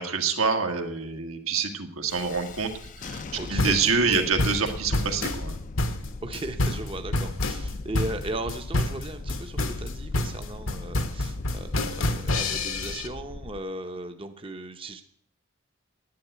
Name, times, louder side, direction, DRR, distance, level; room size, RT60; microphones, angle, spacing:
voice 1, 0.0-2.7 3.0-3.2 3.5-5.6, right 5 dB, 85° right, 5 dB, 1.7 m, -26 dB
Thunderstorm, 2.1-13.6, left 3 dB, 40° left, 0.5 m, -39 dB
voice 2, 3.4-4.2 6.2-15.0, right 2 dB, 25° right, 6 dB, 0.7 m, -37 dB
sound 1, 3.6-13.1, left 2 dB, 70° left, 1.2 m, -28 dB
10.5 x 9.0 x 8.1 m, 0.63 s
head